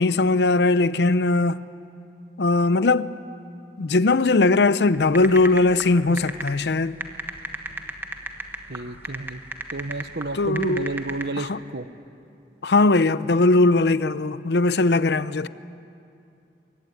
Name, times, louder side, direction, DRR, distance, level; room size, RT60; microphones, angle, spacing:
voice 1, 0.0-1.6 2.4-3.1 3.8-7.0 10.3-10.9 11.4-11.6 12.6-15.5, left 3 dB, 75° left, 0.7 m, -19 dB
sound 1, 4.9-11.2, right 2 dB, 10° right, 1.3 m, -33 dB
voice 2, 8.7-9.4 9.7-11.9, right 2 dB, 70° right, 1.0 m, -31 dB
23.5 x 22.5 x 9.5 m
head